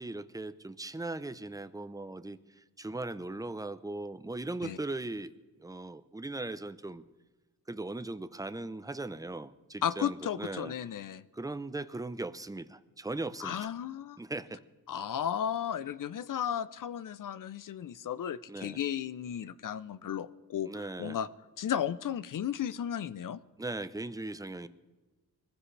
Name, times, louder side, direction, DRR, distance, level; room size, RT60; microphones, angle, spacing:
voice 1, 0.0-5.3 5.6-7.0 7.7-10.7 11.3-13.7 14.2-14.6 18.5-18.8 20.7-21.2 23.6-24.7, right 2 dB, 10° right, 13 dB, 0.6 m, -39 dB
voice 2, 9.8-11.2 13.4-14.2 14.9-20.7 21.0-21.3 21.6-23.4, left 9 dB, 55° left, 16 dB, 0.6 m, -34 dB
22.0 x 15.0 x 3.3 m, 1.2 s
cardioid pair, 70°, 39 cm